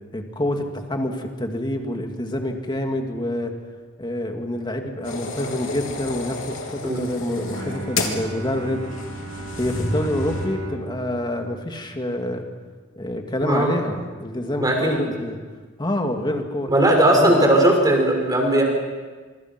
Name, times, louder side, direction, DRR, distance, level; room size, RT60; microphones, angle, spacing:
voice 1, 0.1-3.5 4.0-8.8 9.6-12.4 12.9-15.4 15.8-16.7 17.1-17.4, left 1 dB, 25° left, 4 dB, 2.3 m, -27 dB
sound 1, 5.0-10.5, left 2 dB, 90° left, 3.5 m, -31 dB
Bowed string instrument, 7.3-12.6, right 2 dB, 85° right, 4.8 m, -37 dB
voice 2, 14.6-15.0 16.7-18.6, right 1 dB, 20° right, 1 dB, 5.8 m, -18 dB
26.5 x 24.0 x 6.1 m, 1.4 s
head